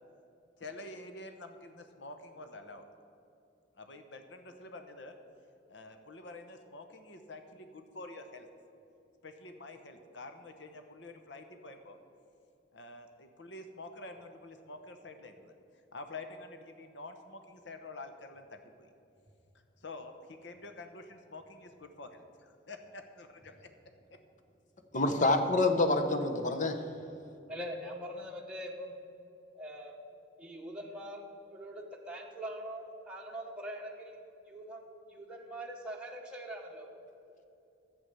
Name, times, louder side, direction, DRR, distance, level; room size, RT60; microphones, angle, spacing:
voice 1, 0.6-2.8 3.8-5.1 5.7-8.5 9.2-12.0 12.7-15.5 15.9-18.9 19.8-23.7 24.1-24.2, left 2 dB, 70° left, 7 dB, 1.0 m, -48 dB
voice 2, 24.9-26.8, left 2 dB, 45° left, 7 dB, 1.0 m, -27 dB
voice 3, 27.5-29.0 29.5-30.0 30.4-34.2 34.5-34.8 35.1-36.9, equal, 5° right, -2 dB, 1.3 m, -43 dB
11.0 x 8.1 x 6.8 m, 2.7 s
head